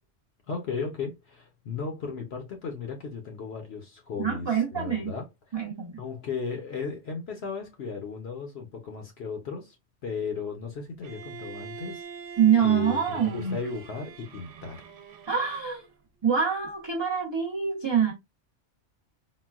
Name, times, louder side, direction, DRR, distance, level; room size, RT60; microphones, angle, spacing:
voice 1, 0.5-5.3 6.0-9.8 10.0-12.1 12.6-14.9, left 5 dB, 60° left, 0.9 m, -35 dB
voice 2, 4.2-5.1 5.5-6.0 12.4-13.6 15.3-15.8 16.2-18.1, right 7 dB, 30° right, 0.5 m, -25 dB
Bowed string instrument, 11.0-15.9, right 6 dB, 80° right, 0.9 m, -44 dB
3.9 x 2.2 x 2.3 m
omnidirectional pair, 1.3 m